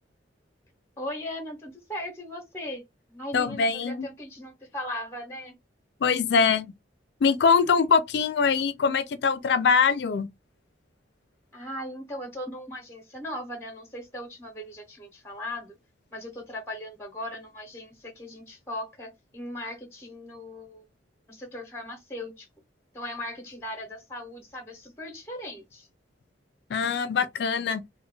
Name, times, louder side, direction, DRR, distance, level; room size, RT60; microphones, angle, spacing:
voice 1, 1.0-2.8 3.1-5.6 11.5-15.8 16.1-20.9 21.3-22.5 22.9-25.9, left 1 dB, 15° left, 0.6 m, -38 dB
voice 2, 3.3-4.1 6.0-6.7 7.2-10.3 26.7-27.8, left 5 dB, 65° left, 0.4 m, -23 dB
2.2 x 2.1 x 3.7 m
head